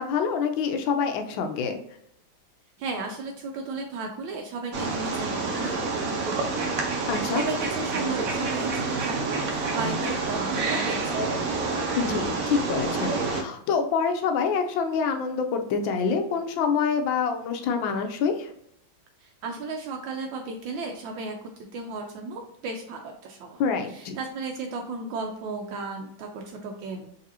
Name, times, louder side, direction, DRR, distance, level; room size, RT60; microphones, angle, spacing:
voice 1, 0.0-1.8 7.1-7.4 12.0-18.5 23.6-24.2, left 6 dB, 80° left, 6 dB, 1.3 m, -26 dB
voice 2, 2.8-6.8 7.0-11.4 19.2-21.4 21.7-23.6 23.9-27.1, right 3 dB, 80° right, 2 dB, 1.3 m, -35 dB
Wild animals, 4.7-13.4, right 3 dB, 60° right, 0.9 m, -28 dB
3.9 x 3.3 x 2.7 m, 0.74 s
omnidirectional pair, 2.1 m